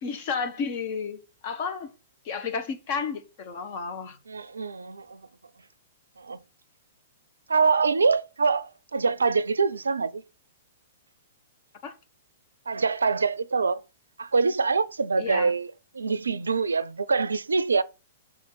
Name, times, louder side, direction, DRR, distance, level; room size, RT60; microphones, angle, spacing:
voice 1, 0.0-1.9 2.2-4.2 11.8-11.9 15.2-15.5, left 5 dB, 40° left, 1.6 m, -32 dB
voice 2, 4.3-5.2 6.2-6.4 7.5-10.2 12.7-13.8 14.2-17.8, right 4 dB, 70° right, 0.5 m, -25 dB
6.5 x 4.3 x 5.8 m
figure-of-eight pair, 110°, 0 cm